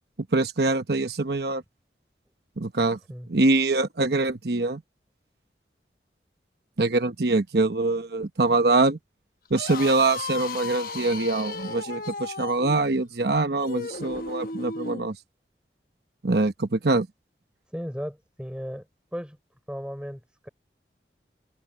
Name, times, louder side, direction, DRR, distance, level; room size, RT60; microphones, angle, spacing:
voice 1, 0.3-1.6 2.6-3.0 3.3-4.8 6.8-9.0 9.5-15.1 16.2-17.1, right 2 dB, 65° right, 1.0 m, -24 dB
sound 1, 9.4-15.1, left 3 dB, 55° left, 1.1 m, -35 dB
voice 2, 17.7-18.9 19.1-19.4 19.7-20.5, equal, 5° right, 3.9 m, -35 dB
head